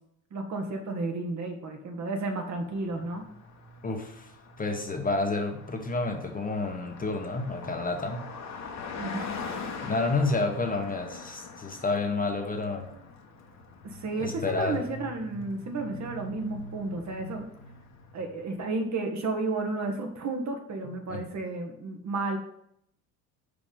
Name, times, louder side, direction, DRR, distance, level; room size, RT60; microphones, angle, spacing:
voice 1, 0.3-3.2 9.0-9.3 13.8-17.4 18.1-22.4, right 3 dB, 40° right, 4 dB, 1.4 m, -32 dB
Car passing by, 2.5-18.6, left 4 dB, 40° left, 1.3 m, -43 dB
voice 2, 3.8-4.3 4.6-8.2 9.8-12.9 14.2-14.8 21.1-21.2, left 3 dB, 20° left, 3 dB, 1.1 m, -29 dB
5.1 x 4.8 x 5.3 m, 0.73 s
hypercardioid pair, 70°, 42 cm